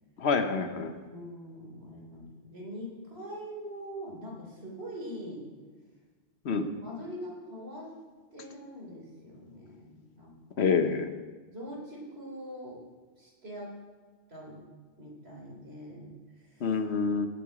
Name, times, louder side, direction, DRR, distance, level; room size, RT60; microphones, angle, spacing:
voice 1, 0.2-0.9 6.4-6.7 10.6-11.1 16.6-17.3, left 5 dB, 80° left, 8 dB, 1.2 m, -27 dB
voice 2, 1.0-5.5 6.8-7.9 8.3-10.7 11.5-12.8 13.2-13.7 14.3-14.6 15.0-16.8, equal, 70° right, -2 dB, 3.6 m, -43 dB
16.0 x 8.1 x 4.9 m, 1.4 s
omnidirectional pair, 1.1 m